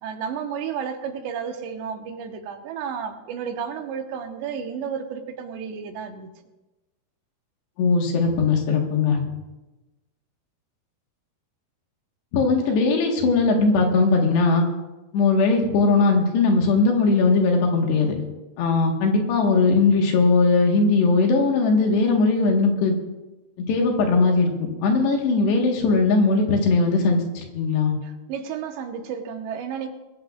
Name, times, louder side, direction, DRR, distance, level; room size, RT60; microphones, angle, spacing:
voice 1, 0.0-6.3 28.0-29.9, right 7 dB, 85° right, 5 dB, 3.4 m, -32 dB
voice 2, 7.8-9.2 12.3-14.6 15.1-18.2 18.6-23.0 23.7-24.5 24.8-28.0, left 3 dB, 75° left, 1 dB, 3.6 m, -19 dB
22.5 x 14.0 x 2.4 m, 1.1 s
omnidirectional pair, 4.9 m